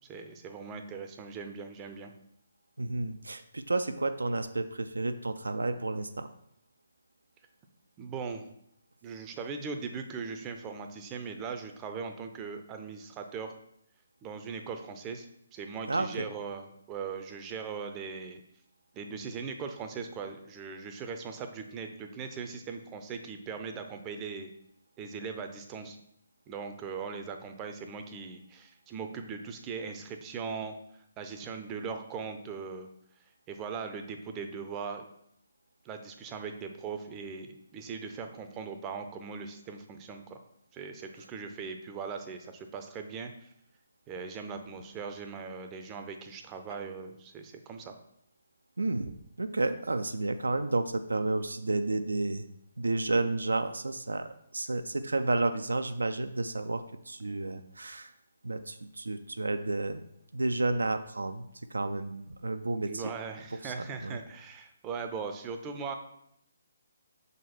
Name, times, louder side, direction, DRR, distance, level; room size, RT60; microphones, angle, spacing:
voice 1, 0.0-2.1 8.0-8.5 9.0-13.5 14.2-18.4 18.9-24.5 25.0-26.0 26.5-30.7 31.2-32.9 33.5-35.1 35.8-40.4 40.7-43.5 44.1-47.9 62.9-65.9, right 5 dB, 20° right, 6 dB, 0.5 m, -39 dB
voice 2, 2.8-6.3 15.9-16.3 46.7-46.8 48.8-52.4 52.8-58.1 58.4-60.0 60.3-63.1 63.5-64.2, right 2 dB, 70° right, 8 dB, 0.4 m, -31 dB
6.2 x 4.1 x 4.3 m, 0.75 s
figure-of-eight pair, 140°, 0 cm